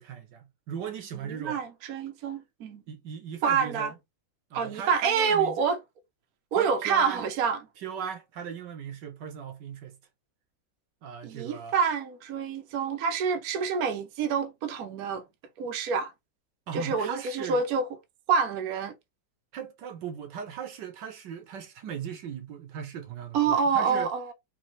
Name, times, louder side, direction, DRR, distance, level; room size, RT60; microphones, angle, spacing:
voice 1, 0.0-1.6 2.9-3.9 4.5-5.7 6.6-7.2 7.8-10.0 11.0-11.7 16.7-17.6 19.5-24.1, right 8 dB, 75° right, 1.5 m, -38 dB
voice 2, 1.2-2.8 3.4-3.9 4.5-5.8 6.5-7.6 11.2-15.2 15.6-16.1 16.7-17.9 18.3-18.9 23.3-24.3, right 6 dB, 60° right, 1.2 m, -27 dB
5.5 x 2.9 x 3.1 m
omnidirectional pair, 1.9 m